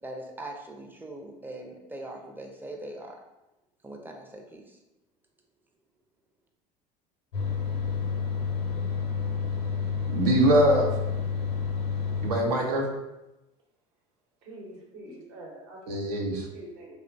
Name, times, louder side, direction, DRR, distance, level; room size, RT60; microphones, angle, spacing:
voice 1, 0.0-3.2 3.8-4.8, right 1 dB, 10° right, 2 dB, 0.4 m, -41 dB
sound 1, 7.3-12.3, left 6 dB, 85° left, 0.6 m, -29 dB
voice 2, 10.1-10.9 12.2-12.8 15.9-16.5, right 1 dB, 80° right, 1 dB, 0.6 m, -23 dB
voice 3, 14.4-16.9, right 1 dB, 60° right, -2 dB, 0.9 m, -45 dB
3.0 x 2.1 x 2.5 m, 0.95 s
hypercardioid pair, 80°, 19 cm